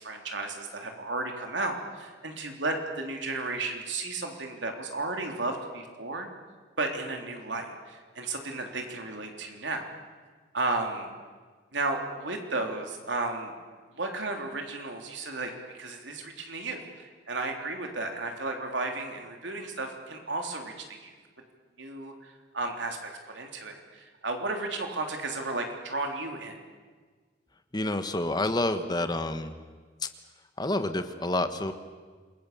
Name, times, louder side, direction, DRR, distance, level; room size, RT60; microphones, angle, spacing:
voice 1, 0.0-6.3 6.8-9.8 10.5-11.1 11.7-13.5 14.0-21.1 21.8-26.6, right 2 dB, 85° right, 3 dB, 3.5 m, -34 dB
voice 2, 27.7-29.6 30.0-30.1 30.6-31.7, left 2 dB, 25° left, 9 dB, 1.3 m, -28 dB
27.5 x 22.0 x 6.9 m, 1.5 s
head